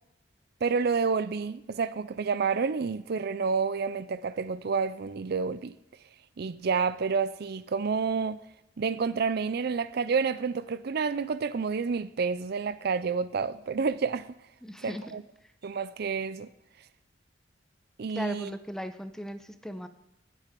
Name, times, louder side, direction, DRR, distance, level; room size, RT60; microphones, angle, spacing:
voice 1, 0.6-5.7 6.4-8.4 8.8-14.3 14.8-15.2 15.6-16.5 18.0-18.5, right 5 dB, 55° right, 0.5 m, -29 dB
voice 2, 14.6-15.0 15.4-15.5 18.1-19.9, equal, 5° left, 0.8 m, -37 dB
18.5 x 8.5 x 5.2 m
head